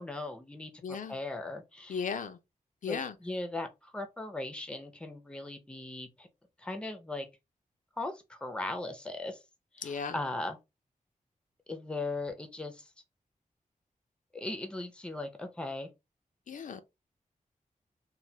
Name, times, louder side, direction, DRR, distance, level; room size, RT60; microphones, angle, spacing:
voice 1, 0.0-2.0 2.9-6.3 6.6-7.3 8.0-9.4 9.7-10.6 11.7-12.9 14.3-15.9, left 2 dB, 5° left, 0.5 m, -38 dB
voice 2, 0.8-1.2 1.9-2.4 2.8-3.1 9.8-10.2 16.5-16.8, left 6 dB, 65° left, 0.4 m, -36 dB
3.2 x 2.1 x 2.7 m
wide cardioid pair, 140°, 14 cm